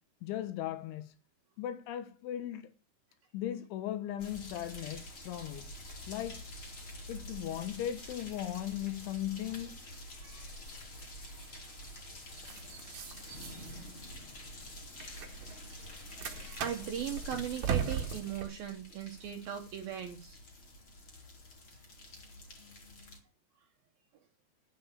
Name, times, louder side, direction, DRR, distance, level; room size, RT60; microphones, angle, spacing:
voice 1, 0.2-1.2 1.6-2.7 3.3-5.7 6.1-6.4 7.1-9.8, left 12 dB, 75° left, 3.3 m, -37 dB
sound 1, 4.2-23.2, left 1 dB, 30° left, 3.1 m, -47 dB
voice 2, 10.2-10.6 11.2-11.5 16.2-20.4, right 10 dB, 75° right, 2.2 m, -39 dB
sound 2, 10.4-18.4, right 8 dB, 55° right, 2.2 m, -41 dB
11.5 x 9.5 x 6.8 m
omnidirectional pair, 5.7 m